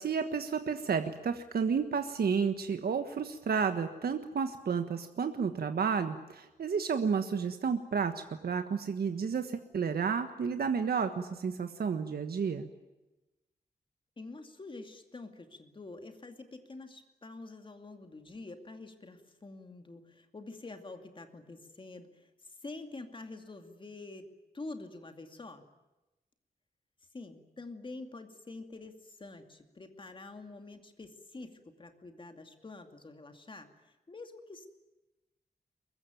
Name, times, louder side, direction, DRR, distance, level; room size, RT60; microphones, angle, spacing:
voice 1, 0.0-12.7, right 6 dB, 70° right, 8 dB, 1.5 m, -31 dB
voice 2, 14.2-25.6 27.1-34.7, left 3 dB, 30° left, 7 dB, 2.5 m, -47 dB
23.5 x 22.0 x 9.3 m, 1.0 s
wide cardioid pair, 170°, 17 cm